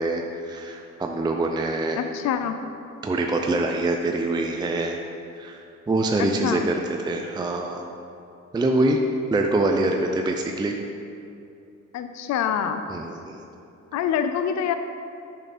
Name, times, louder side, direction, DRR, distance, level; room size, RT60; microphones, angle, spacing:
voice 1, 0.0-2.0 3.0-5.0 5.4-7.8 8.5-9.0 9.3-10.8 12.9-13.4, right 2 dB, 15° right, 2 dB, 0.4 m, -25 dB
voice 2, 2.0-2.5 6.2-6.7 11.9-12.8 13.9-14.8, left 8 dB, 65° left, 9 dB, 0.5 m, -25 dB
7.1 x 5.9 x 4.2 m, 2.7 s
cardioid pair, 90°, 30 cm